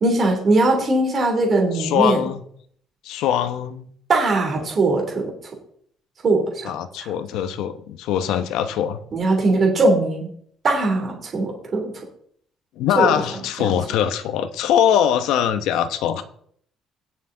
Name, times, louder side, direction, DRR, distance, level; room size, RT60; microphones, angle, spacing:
voice 1, 0.0-2.2 4.1-5.3 6.2-6.7 7.0-7.1 9.1-10.3 10.6-11.9 13.0-13.1, right 2 dB, 30° right, 1 dB, 2.9 m, -20 dB
voice 2, 1.7-2.4 3.0-3.9 4.6-4.7 6.6-9.0 12.8-16.2, left 9 dB, 75° left, 10 dB, 1.0 m, -22 dB
17.0 x 6.6 x 3.9 m, 0.63 s
cardioid pair, 175°, 0 cm